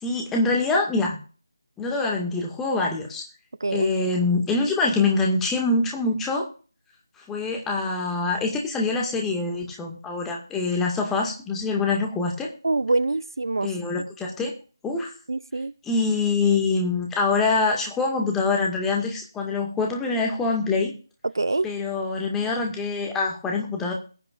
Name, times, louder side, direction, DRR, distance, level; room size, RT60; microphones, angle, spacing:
voice 1, 0.0-1.2 1.8-3.2 3.7-6.5 7.3-12.5 13.6-14.5 14.8-15.1 15.8-20.9 21.6-23.9, left 3 dB, 5° left, 2.0 m, -24 dB
voice 2, 12.6-13.7 15.3-15.7 21.3-21.7, right 2 dB, 65° right, 0.5 m, -24 dB
21.5 x 9.0 x 2.5 m
figure-of-eight pair, 160°, 2 cm